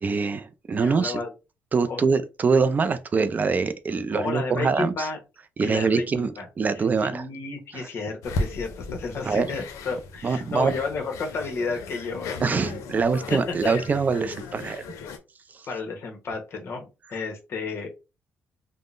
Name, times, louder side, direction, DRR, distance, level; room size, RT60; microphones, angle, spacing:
voice 1, 0.0-1.2 1.7-5.1 5.6-6.3 6.6-7.3 9.3-9.5 10.2-10.7 12.4-14.8, right 5 dB, 30° right, 0.3 m, -24 dB
voice 2, 0.8-1.3 1.9-2.1 4.1-5.2 5.6-12.4 13.3-13.7 15.6-17.9, left 4 dB, 55° left, 0.9 m, -32 dB
sound 1, 8.2-15.2, left 3 dB, 90° left, 0.5 m, -36 dB
3.5 x 2.0 x 2.4 m
cardioid pair, 120°, 5 cm